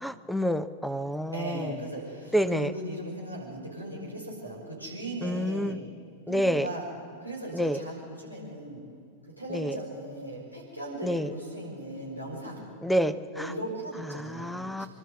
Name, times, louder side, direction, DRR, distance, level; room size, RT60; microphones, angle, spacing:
voice 1, 0.0-1.7 2.3-2.7 5.2-5.8 6.3-6.7 7.5-7.8 9.5-9.7 11.0-11.3 12.8-13.5 14.1-14.9, equal, ahead, 15 dB, 0.7 m, -28 dB
voice 2, 1.3-5.8 6.3-6.9 7.2-8.8 9.4-12.7 13.3-14.9, right 1 dB, 90° left, -2 dB, 5.7 m, -38 dB
26.0 x 12.5 x 8.1 m, 2.5 s
figure-of-eight pair, 90°, 0 cm